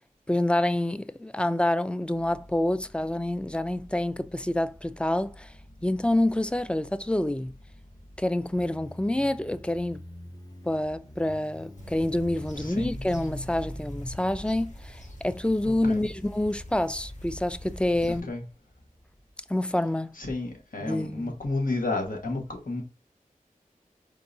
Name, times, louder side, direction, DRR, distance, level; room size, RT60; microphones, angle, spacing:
voice 1, 0.3-5.5 5.8-7.5 8.2-10.0 10.7-18.3 19.5-20.1 20.8-21.3, left 1 dB, 5° left, 0.3 m, -27 dB
Motorcycle, 2.1-19.3, left 1 dB, 25° left, 0.9 m, -49 dB
sound 1, 11.8-18.2, equal, 60° left, 1.3 m, -41 dB
voice 2, 12.6-12.9 15.6-16.0 18.0-18.4 20.2-22.8, left 2 dB, 75° left, 1.3 m, -31 dB
4.7 x 3.7 x 2.7 m
wide cardioid pair, 55°, 14 cm